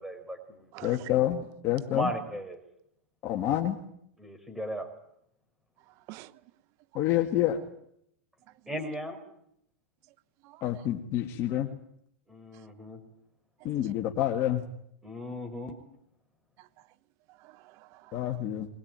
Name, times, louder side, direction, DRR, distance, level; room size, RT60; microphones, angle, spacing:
voice 1, 0.0-1.0 1.9-2.6 4.2-4.9 8.7-9.2 12.3-13.0 15.0-15.7, equal, 5° right, 4.9 m, -36 dB
voice 2, 0.8-2.1 3.2-3.8 6.9-7.6 10.6-11.7 13.6-14.6 18.1-18.7, left 12 dB, 40° left, 1.9 m, -28 dB
voice 3, 5.9-6.3 10.4-10.6 13.6-13.7 16.6-16.7 17.3-18.4, right 18 dB, 45° right, 1.0 m, -49 dB
21.0 x 21.0 x 9.0 m
hypercardioid pair, 130°, 7 cm